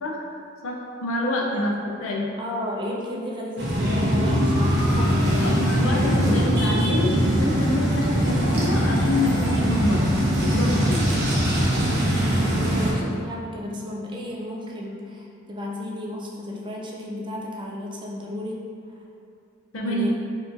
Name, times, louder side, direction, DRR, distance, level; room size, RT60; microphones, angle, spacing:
voice 1, 0.6-2.3 5.4-10.0 10.4-11.0 19.7-20.1, left 1 dB, 70° left, -2 dB, 0.6 m, -27 dB
voice 2, 2.4-5.5 12.3-18.6 19.9-20.1, left 1 dB, 25° right, -3 dB, 0.4 m, -33 dB
sound 1, 3.6-12.9, equal, 55° right, 0.8 m, -21 dB
4.5 x 2.8 x 2.6 m, 2.4 s
head